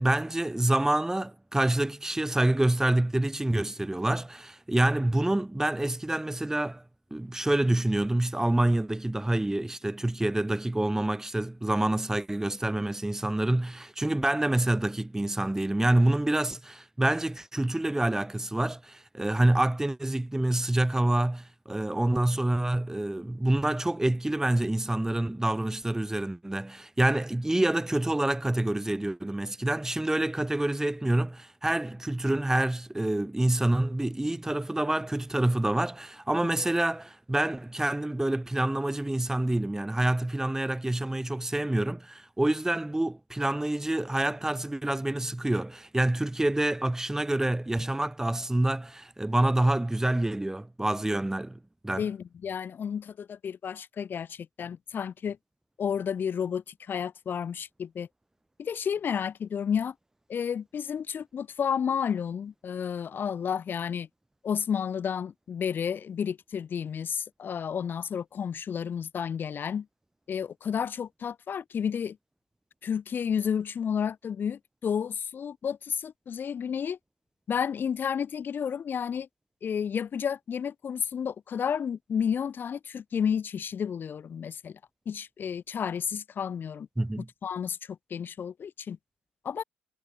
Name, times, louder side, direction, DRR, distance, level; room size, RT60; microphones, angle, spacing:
voice 1, 0.0-6.8 7.1-52.1 87.0-87.3, right 1 dB, 10° right, 4.1 m, -27 dB
voice 2, 52.0-55.4 55.8-58.1 58.6-59.9 60.3-64.1 64.4-69.9 70.3-72.2 72.8-77.0 77.5-79.3 79.6-84.8 85.1-86.9 87.4-89.0 89.4-89.6, left 7 dB, 50° left, 4.5 m, -31 dB
hypercardioid pair, 55°, 5 cm